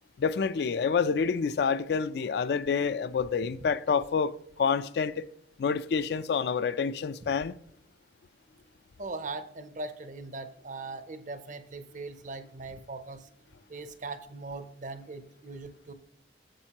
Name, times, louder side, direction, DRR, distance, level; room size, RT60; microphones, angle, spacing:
voice 1, 0.2-5.3 5.6-7.5, left 5 dB, 60° left, 0.3 m, -28 dB
voice 2, 9.0-13.3 13.7-15.9, right 3 dB, 45° right, 0.6 m, -40 dB
8.8 x 7.2 x 2.9 m
head